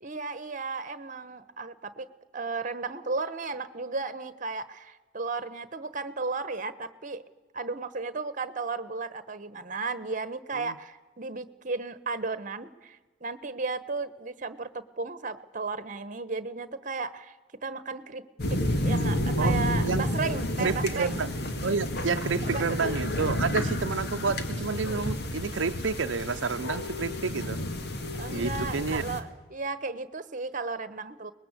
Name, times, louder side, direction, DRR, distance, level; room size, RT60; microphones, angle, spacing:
voice 1, 0.0-2.1 2.3-7.2 7.5-17.4 17.6-18.2 18.5-21.2 22.4-22.6 28.2-31.3, right 4 dB, 45° right, 1.2 m, -34 dB
sound 1, 18.4-29.2, left 1 dB, 60° left, 2.1 m, -30 dB
voice 2, 20.6-21.3 21.6-27.6 28.3-29.0, right 5 dB, 80° right, 0.7 m, -29 dB
23.5 x 20.5 x 8.3 m
head